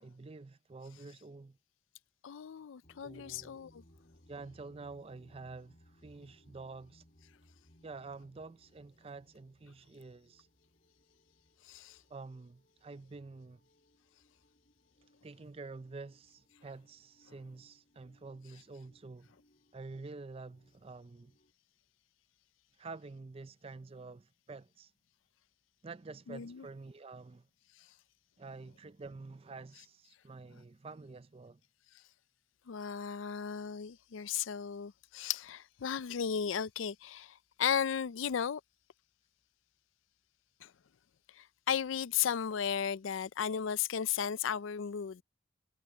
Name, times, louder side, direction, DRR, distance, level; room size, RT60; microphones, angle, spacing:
voice 1, 0.0-1.6 3.0-3.6 4.3-7.0 7.8-10.5 12.1-13.6 15.2-19.3 19.7-21.4 22.8-24.9 25.8-27.5 28.4-31.6, right 3 dB, 30° right, 0.4 m, -48 dB
voice 2, 2.2-3.8 11.7-12.0 26.3-26.6 32.7-38.6 40.6-40.7 41.4-45.2, left 8 dB, 80° left, 0.4 m, -35 dB
sound 1, 2.8-21.5, equal, 45° left, 3.9 m, -67 dB
head